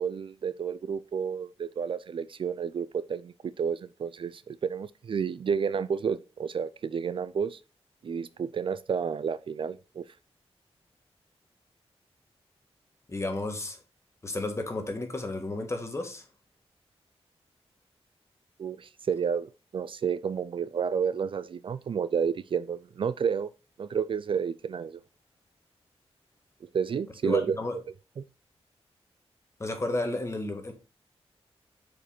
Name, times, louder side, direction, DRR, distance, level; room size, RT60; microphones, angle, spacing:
voice 1, 0.0-7.6 8.0-10.0 18.6-23.5 23.8-25.0 26.6-27.6 28.2-28.3, right 6 dB, 55° right, 0.4 m, -31 dB
voice 2, 13.1-13.8 14.2-16.2 27.2-27.8 29.6-30.7, left 2 dB, 25° left, 1.6 m, -32 dB
6.7 x 5.1 x 4.2 m
wide cardioid pair, 95°, 11 cm